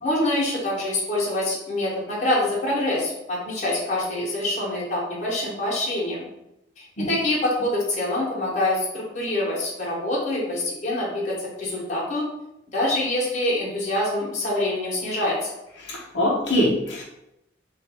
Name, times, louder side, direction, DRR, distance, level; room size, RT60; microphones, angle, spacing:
voice 1, 0.0-6.3 6.8-12.3 12.7-15.5, left 1 dB, 40° left, -5 dB, 1.2 m, -25 dB
voice 2, 15.8-17.0, left 1 dB, 85° left, -4 dB, 0.8 m, -23 dB
3.3 x 2.6 x 4.3 m, 0.88 s
head